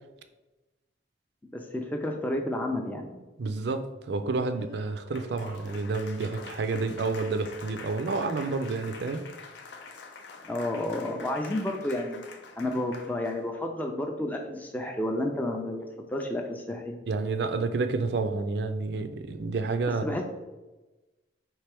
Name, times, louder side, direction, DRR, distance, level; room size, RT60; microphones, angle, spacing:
voice 1, 1.5-3.2 10.4-12.2 12.6-16.9 20.0-20.2, left 1 dB, 10° left, 2 dB, 0.4 m, -31 dB
voice 2, 3.4-9.2 17.1-20.2, right 3 dB, 60° right, 9 dB, 0.4 m, -29 dB
Applause, 4.3-13.5, left 4 dB, 65° left, 0.5 m, -46 dB
4.4 x 3.2 x 3.4 m, 1.1 s
head